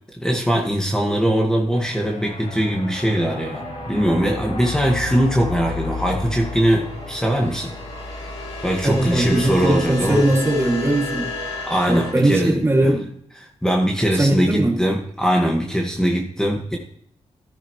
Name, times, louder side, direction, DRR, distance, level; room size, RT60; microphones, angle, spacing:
voice 1, 0.2-7.7 8.6-10.2 11.7-12.9 13.6-16.8, equal, 5° left, 0 dB, 1.8 m, -21 dB
sound 1, 1.7-12.1, left 3 dB, 75° left, 4.5 m, -32 dB
voice 2, 8.8-11.3 11.9-13.0 14.2-14.8, right 1 dB, 20° right, 1 dB, 2.4 m, -19 dB
14.0 x 10.0 x 3.2 m, 0.65 s
cardioid pair, 80°, 11 cm